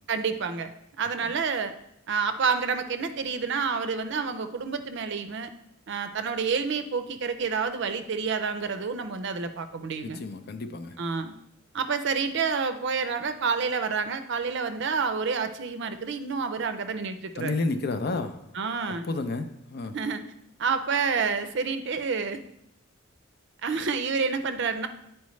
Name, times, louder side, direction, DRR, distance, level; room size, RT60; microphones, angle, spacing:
voice 1, 0.1-1.7 2.1-5.5 5.9-10.2 11.0-11.3 11.7-17.6 18.5-19.1 19.9-20.2 20.6-22.4 23.6-24.9, right 5 dB, 60° right, 10 dB, 0.5 m, -29 dB
voice 2, 10.2-11.0 17.4-18.5 18.9-20.0, left 3 dB, 50° left, 9 dB, 0.5 m, -31 dB
9.4 x 4.5 x 3.1 m, 0.79 s
head